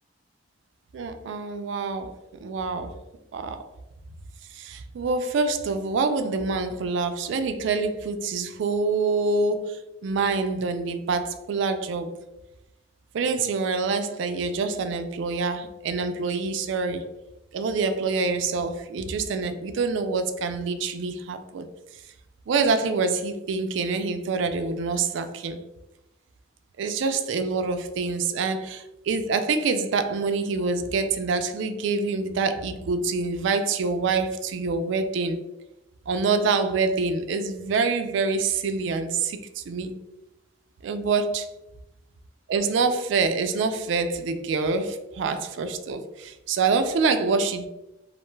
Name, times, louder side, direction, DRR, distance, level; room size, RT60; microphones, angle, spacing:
voice 1, 0.9-3.0 3.3-3.6 4.5-12.1 13.1-17.0 17.5-21.7 22.5-25.6 26.8-35.4 36.1-39.9 40.8-41.5 42.5-47.7, right 4 dB, 65° right, 0.3 m, -26 dB
2.4 x 2.2 x 3.1 m
head